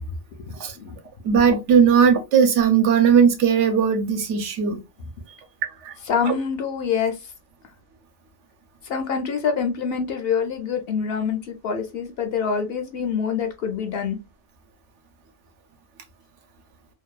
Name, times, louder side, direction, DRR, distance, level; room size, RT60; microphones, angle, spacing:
voice 1, 0.5-1.0 6.1-7.2 8.8-14.2, left 6 dB, 65° left, 0.7 m, -26 dB
voice 2, 1.2-4.8 5.3-5.4 5.8-5.9 6.2-6.3, right 7 dB, 75° right, 0.9 m, -18 dB
2.6 x 2.2 x 2.3 m
omnidirectional pair, 1.2 m